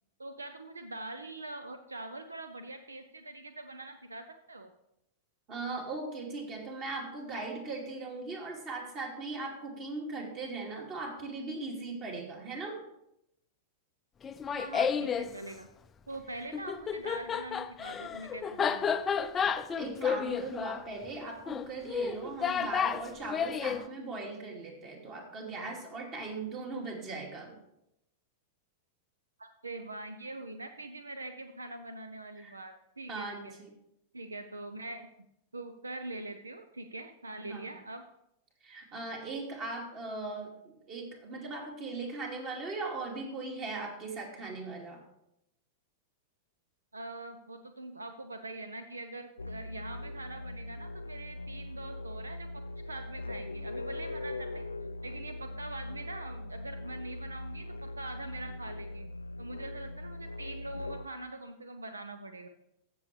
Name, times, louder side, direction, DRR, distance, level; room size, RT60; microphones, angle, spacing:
voice 1, 0.2-4.7 14.5-15.7 16.1-18.9 29.4-33.5 34.1-35.3 35.5-38.0 46.9-54.6 55.0-59.1 59.4-62.5, right 2 dB, 80° right, 9 dB, 0.6 m, -43 dB
voice 2, 5.5-12.8 19.8-27.5 32.4-32.6 33.1-33.7 37.5-37.7 38.6-45.0, right 3 dB, 35° right, 1 dB, 2.6 m, -39 dB
Laughter, 14.2-15.3 16.5-23.8, left 7 dB, 20° left, 0.5 m, -31 dB
sound 1, 49.4-61.0, left 1 dB, 80° left, 0.3 m, -41 dB
15.0 x 6.9 x 3.3 m, 0.81 s
figure-of-eight pair, 95°, 0 cm